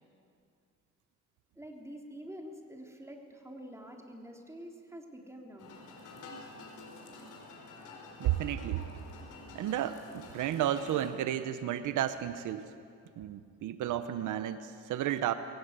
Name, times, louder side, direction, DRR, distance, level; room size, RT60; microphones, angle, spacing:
voice 1, 1.6-5.7, equal, 10° right, 1 dB, 3.5 m, -47 dB
sound 1, 5.6-11.1, left 2 dB, 80° left, 4.6 m, -49 dB
voice 2, 8.2-8.9 9.5-12.7 13.2-15.3, right 11 dB, 80° right, 11 dB, 0.9 m, -32 dB
22.0 x 18.0 x 8.2 m, 2.3 s
cardioid pair, 90°, 30 cm